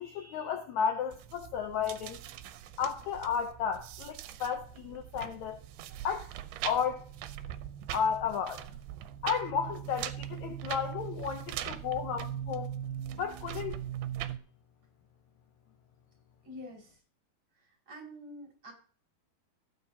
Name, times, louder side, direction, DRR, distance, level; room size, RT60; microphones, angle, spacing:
voice 1, 0.0-2.2 2.8-5.6 6.0-6.3 6.6-7.1 7.9-8.6 9.2-12.7 13.2-13.7, left 7 dB, 85° left, 1.6 m, -33 dB
sound 1, 1.1-14.4, right 11 dB, 90° right, 2.7 m, -41 dB
voice 2, 16.4-17.0 17.9-18.7, equal, 30° right, 5.8 m, -46 dB
16.5 x 8.9 x 2.8 m
omnidirectional pair, 4.4 m